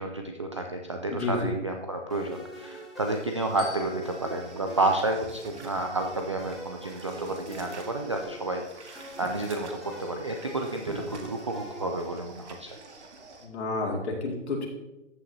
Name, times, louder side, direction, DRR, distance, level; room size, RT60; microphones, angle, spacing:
voice 1, 0.0-12.8, right 2 dB, 25° right, 3 dB, 0.3 m, -31 dB
voice 2, 1.1-1.5 13.4-14.7, left 3 dB, 65° left, -1 dB, 2.4 m, -30 dB
sound 1, 2.1-12.8, right 1 dB, ahead, 2.3 m, -45 dB
sound 2, 3.3-13.5, right 3 dB, 70° right, 1.8 m, -48 dB
Glockenspiel, 3.6-6.1, left 8 dB, 45° left, 2.6 m, -49 dB
14.0 x 6.0 x 2.7 m, 0.96 s
hypercardioid pair, 145°, 36 cm